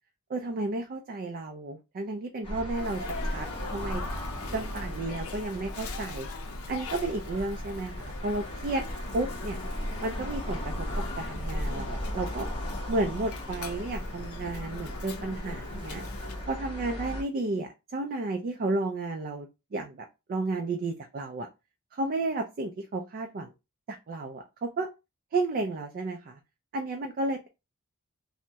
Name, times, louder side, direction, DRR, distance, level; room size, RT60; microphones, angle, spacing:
voice 1, 0.3-4.0 4.5-6.3 6.7-8.8 9.1-9.6 10.0-12.5 12.9-16.0 16.5-21.5 21.9-23.5 23.9-24.9 25.3-26.4 26.7-27.5, right 2 dB, 40° right, 5 dB, 0.3 m, -32 dB
sound 1, 2.4-17.2, equal, 25° left, 0.8 m, -37 dB
Sneeze, 2.7-16.5, left 2 dB, 65° left, 0.5 m, -40 dB
3.3 x 2.0 x 2.7 m, 0.26 s
head